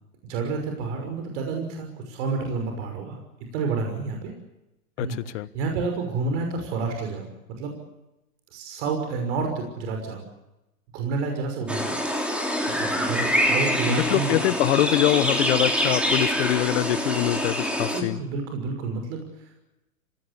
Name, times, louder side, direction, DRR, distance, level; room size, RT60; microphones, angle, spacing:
voice 1, 0.3-3.2 3.5-4.3 5.0-7.3 7.6-7.8 8.5-10.3 10.9-14.3 17.9-19.6, right 4 dB, 50° right, 4 dB, 6.0 m, -30 dB
sound 1, 11.7-18.0, equal, ahead, 3.2 m, -25 dB
voice 2, 13.9-18.2, left 15 dB, 50° left, 15 dB, 1.2 m, -24 dB
28.0 x 18.0 x 8.3 m, 0.95 s
hypercardioid pair, 140°, 45 cm